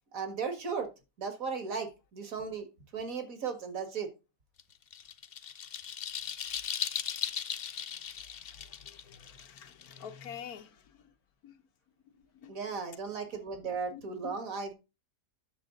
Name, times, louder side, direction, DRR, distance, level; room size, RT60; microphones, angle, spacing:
voice 1, 0.1-0.9 1.2-2.7 2.9-4.1 12.5-14.7, right 5 dB, 65° right, 2.1 m, -36 dB
sound 1, 4.6-10.4, left 8 dB, 50° left, 0.8 m, -38 dB
voice 2, 8.5-10.8 11.4-11.5 12.1-12.5 13.9-14.3, left 8 dB, 90° left, 1.5 m, -47 dB
10.5 x 7.2 x 3.8 m
omnidirectional pair, 1.5 m